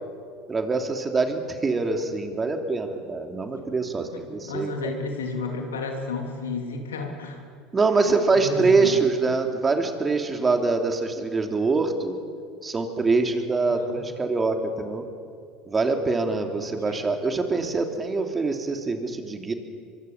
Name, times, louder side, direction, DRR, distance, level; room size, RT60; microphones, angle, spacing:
voice 1, 0.5-4.9 7.7-12.2 12.6-15.0 15.7-19.5, right 3 dB, 25° right, 4 dB, 3.1 m, -24 dB
voice 2, 4.4-7.4 8.1-9.0 13.6-14.0 16.6-17.1, left 4 dB, 85° left, 3 dB, 3.3 m, -32 dB
24.5 x 23.5 x 7.4 m, 2.3 s
hypercardioid pair, 75°, 0 cm